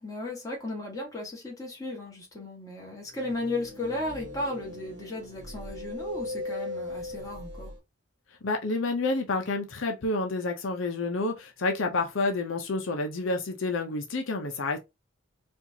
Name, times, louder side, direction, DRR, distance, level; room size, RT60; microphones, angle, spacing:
voice 1, 0.0-7.7 11.8-12.0, left 2 dB, 15° left, 1.4 m, -35 dB
sound 1, 3.1-7.8, left 2 dB, 60° right, 1.0 m, -39 dB
voice 2, 8.4-14.8, left 3 dB, 75° left, 0.6 m, -29 dB
4.3 x 2.5 x 2.8 m
head